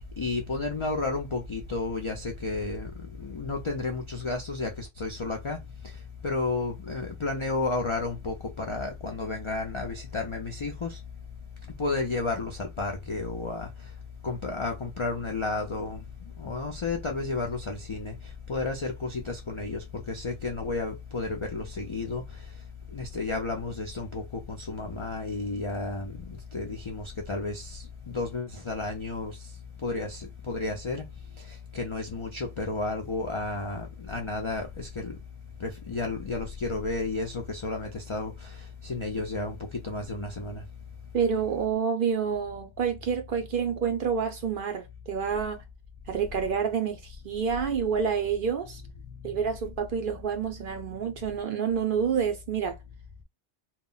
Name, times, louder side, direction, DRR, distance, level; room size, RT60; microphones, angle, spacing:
voice 1, 0.2-5.6 6.2-11.0 11.8-13.7 14.2-16.0 16.4-18.1 18.5-22.4 22.9-29.5 29.8-31.1 31.4-35.2 35.6-40.6, left 3 dB, 55° left, 0.3 m, -32 dB
voice 2, 41.1-45.6 46.1-48.8 49.2-52.8, right 6 dB, 60° right, 0.6 m, -28 dB
2.2 x 2.0 x 3.7 m
omnidirectional pair, 1.2 m